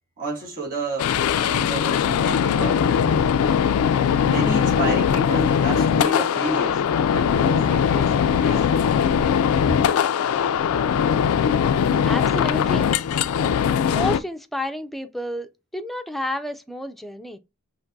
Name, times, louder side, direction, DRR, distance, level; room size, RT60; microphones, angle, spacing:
voice 1, 0.2-3.1 4.2-8.9, right 1 dB, 40° right, 2.6 m, -30 dB
sound 1, 1.0-14.2, left 7 dB, 85° left, 0.3 m, -20 dB
voice 2, 12.0-13.0 13.9-17.4, left 1 dB, ahead, 0.3 m, -30 dB
5.7 x 2.5 x 2.6 m
head